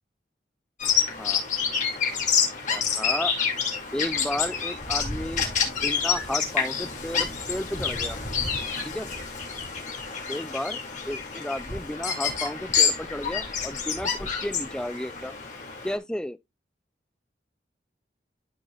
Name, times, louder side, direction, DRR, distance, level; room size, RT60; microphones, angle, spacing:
Bird vocalization bird call bird song, 0.8-16.0, left 6 dB, 45° left, 2.4 m, -28 dB
voice 1, 2.7-3.3 3.9-8.2 8.8-9.1 10.3-15.3 15.8-16.4, left 1 dB, 5° left, 0.3 m, -33 dB
13.0 x 4.7 x 2.4 m
head